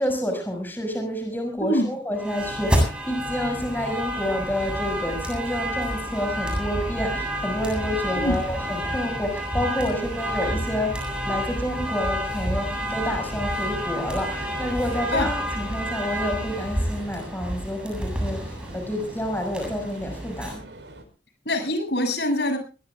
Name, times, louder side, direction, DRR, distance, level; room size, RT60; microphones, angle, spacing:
voice 1, 0.0-20.6, equal, 10° left, 3 dB, 5.9 m, -29 dB
sound 1, 2.2-20.5, equal, 5° right, 7.8 m, -29 dB
sound 2, 5.9-21.0, right 1 dB, 80° right, 5.2 m, -44 dB
voice 2, 21.5-22.6, left 1 dB, 65° left, 6 dB, 7.0 m, -24 dB
23.0 x 21.0 x 2.4 m, 0.35 s
head